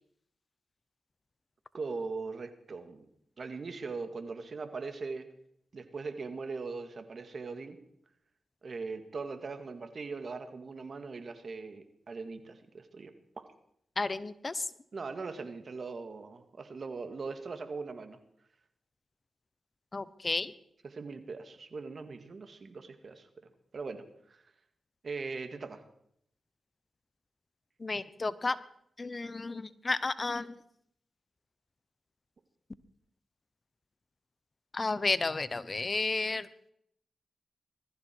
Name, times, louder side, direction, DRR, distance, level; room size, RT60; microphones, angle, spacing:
voice 1, 1.7-3.1 3.4-5.3 5.7-7.8 8.6-13.5 14.9-18.2 20.8-23.3 23.7-24.4 25.0-25.8, right 4 dB, 60° right, 8 dB, 2.0 m, -40 dB
voice 2, 14.0-14.7 19.9-20.5 27.8-28.6 29.0-30.5 34.7-36.7, left 3 dB, 40° left, 16 dB, 0.9 m, -32 dB
21.0 x 14.0 x 4.6 m, 0.72 s
cardioid pair, 50°, 0 cm